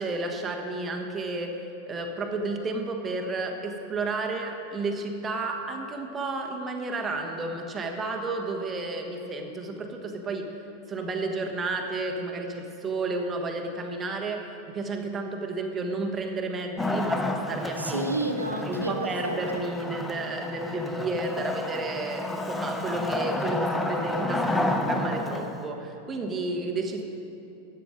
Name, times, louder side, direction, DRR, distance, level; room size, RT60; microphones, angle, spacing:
voice 1, 0.0-10.6 10.9-18.1 18.7-27.0, right 3 dB, 20° right, 3 dB, 1.3 m, -32 dB
Wood, 16.8-25.7, left 2 dB, 10° left, 0.8 m, -30 dB
voice 2, 17.8-19.7, right 2 dB, 85° right, 3 dB, 0.8 m, -31 dB
13.5 x 9.2 x 5.0 m, 2.8 s
figure-of-eight pair, 90°, 0 cm